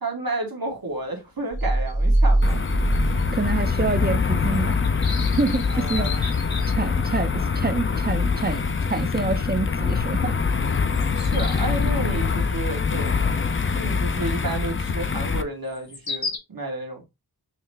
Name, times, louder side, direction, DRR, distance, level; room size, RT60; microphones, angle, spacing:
voice 1, 0.0-2.6 5.7-6.3 11.1-13.1 13.7-17.0, right 2 dB, 70° right, 1.4 m, -31 dB
sound 1, 0.7-0.8 1.0-1.1 1.5-3.3 3.6-3.7 4.1-4.2 4.5-7.1 7.8-7.9 8.3-8.5 8.9-9.1 10.0-10.1 10.5-11.9 13.0-13.3 13.7-13.8 15.7-16.4, left 4 dB, 80° left, 1.1 m, -35 dB
sound 2, 1.5-4.5, right 1 dB, 55° right, 0.9 m, -22 dB
sound 3, 2.4-15.4, left 5 dB, 35° left, 0.5 m, -24 dB
voice 2, 3.3-4.8 5.4-6.4 6.8-8.6 8.9-10.3, right 3 dB, 25° right, 0.5 m, -27 dB
5.7 x 2.1 x 3.3 m
wide cardioid pair, 45°, 37 cm